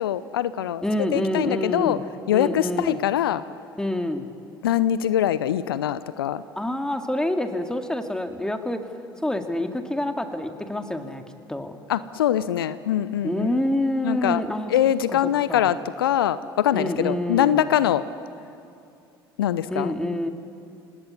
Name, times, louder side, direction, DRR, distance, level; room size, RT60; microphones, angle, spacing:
voice 1, 0.0-0.8 1.1-2.0 2.3-3.4 4.6-6.4 11.9-13.5 14.0-14.4 14.7-18.0 19.4-19.9, left 11 dB, 75° left, 16 dB, 0.6 m, -23 dB
voice 2, 0.8-2.0 2.3-3.0 3.8-4.3 6.6-8.8 9.2-11.2 11.5-11.8 13.2-14.7 15.1-15.2 15.5-15.7 16.7-17.7 19.7-20.3, left 1 dB, 5° left, 5 dB, 2.3 m, -27 dB
27.0 x 18.5 x 9.7 m, 2.6 s
figure-of-eight pair, 60°, 12 cm